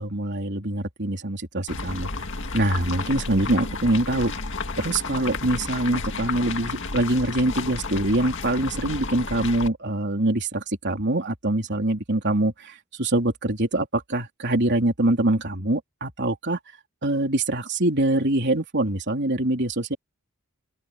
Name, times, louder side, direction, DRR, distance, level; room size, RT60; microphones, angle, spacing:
voice 1, 0.0-2.2 2.5-4.3 4.8-16.8 17.0-20.0, right 1 dB, 50° right, 3.7 m, -24 dB
sound 1, 1.7-9.7, left 3 dB, 55° left, 2.1 m, -32 dB
open air
head